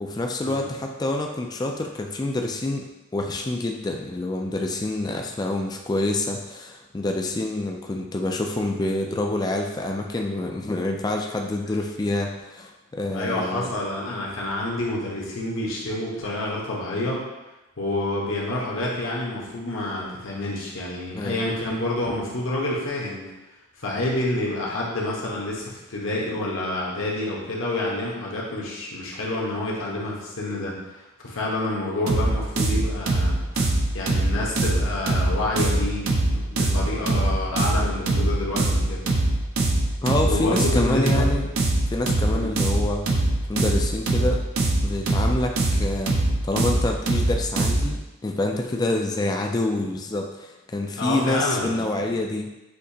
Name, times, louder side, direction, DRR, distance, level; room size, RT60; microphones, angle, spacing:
voice 1, 0.0-2.9 3.1-13.7 21.1-21.5 40.0-41.5 41.9-44.4 44.8-52.5, left 2 dB, 20° left, 2 dB, 0.3 m, -27 dB
voice 2, 13.1-17.2 17.8-23.2 23.8-33.7 33.9-39.0 40.3-41.3 42.3-42.5 51.0-52.1, left 1 dB, 70° left, -4 dB, 1.1 m, -28 dB
sound 1, 32.1-48.0, right 2 dB, 70° right, 0.6 m, -22 dB
6.4 x 2.8 x 2.8 m, 1.0 s
head